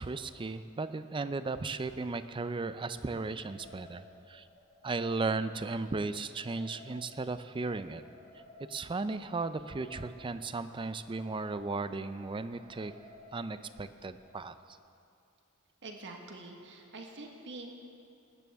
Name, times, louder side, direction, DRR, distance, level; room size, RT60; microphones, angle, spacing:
voice 1, 0.0-4.5 4.8-8.0 8.7-12.9 13.3-14.5, right 3 dB, 20° right, 12 dB, 0.4 m, -36 dB
sound 1, 3.4-14.4, left 1 dB, 20° left, 2.0 m, -56 dB
voice 2, 15.8-17.7, right 2 dB, 55° right, 2 dB, 1.4 m, -45 dB
18.5 x 14.0 x 3.5 m, 2.5 s
head